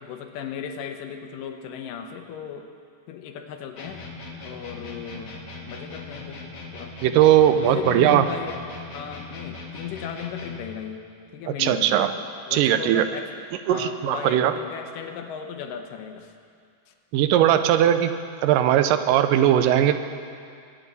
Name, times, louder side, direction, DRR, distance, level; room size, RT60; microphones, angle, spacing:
voice 1, 0.0-2.7 3.1-4.1 4.4-5.4 5.6-6.4 6.7-6.9 7.5-8.6 8.9-12.0 12.5-13.3 13.7-16.3 16.9-17.0, left 8 dB, 85° left, 5 dB, 2.5 m, -36 dB
sound 1, 3.8-10.7, left 3 dB, 70° left, 0.8 m, -40 dB
voice 2, 7.0-8.3 11.6-12.1 12.5-13.0 13.7-14.5 17.1-20.0, right 11 dB, 85° right, 10 dB, 2.2 m, -19 dB
23.0 x 9.1 x 4.1 m, 2.3 s
omnidirectional pair, 3.9 m